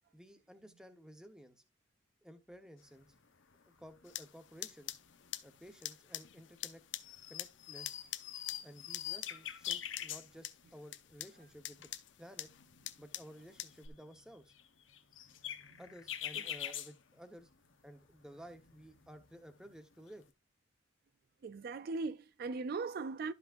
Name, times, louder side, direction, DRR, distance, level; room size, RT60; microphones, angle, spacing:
voice 1, 0.1-1.6 2.2-3.1 3.7-4.9 5.4-6.8 7.3-8.0 8.6-11.9 12.2-12.5 13.0-14.5 15.8-17.5 17.8-20.2, equal, 5° right, 1.0 m, -54 dB
sound 1, 3.1-3.2 3.5-4.1 4.4-5.7 6.3-6.7 7.0-10.7 11.1-11.2 11.4-11.9 12.3-17.7 18.0-20.3, left 10 dB, 90° left, 1.0 m, -45 dB
sound 2, 4.0-13.9, left 13 dB, 70° left, 0.7 m, -47 dB
voice 2, 16.3-16.7 21.4-23.3, right 4 dB, 50° right, 0.3 m, -39 dB
12.5 x 5.9 x 2.5 m
head